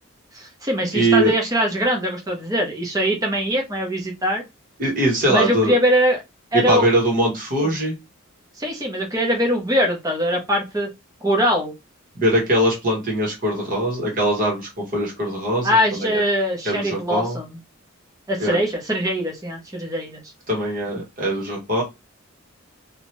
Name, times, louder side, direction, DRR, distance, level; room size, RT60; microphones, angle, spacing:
voice 1, 0.3-4.4 5.3-6.2 6.5-6.9 7.6-7.7 8.6-10.9 11.2-11.7 15.6-17.6 18.3-20.2, equal, 15° right, 0 dB, 0.8 m, -22 dB
voice 2, 0.9-1.3 4.8-5.7 6.5-8.0 12.1-16.2 16.6-17.4 18.4-18.6 20.5-21.8, right 1 dB, 40° right, -1 dB, 1.1 m, -21 dB
2.8 x 2.4 x 3.1 m, 0.23 s
head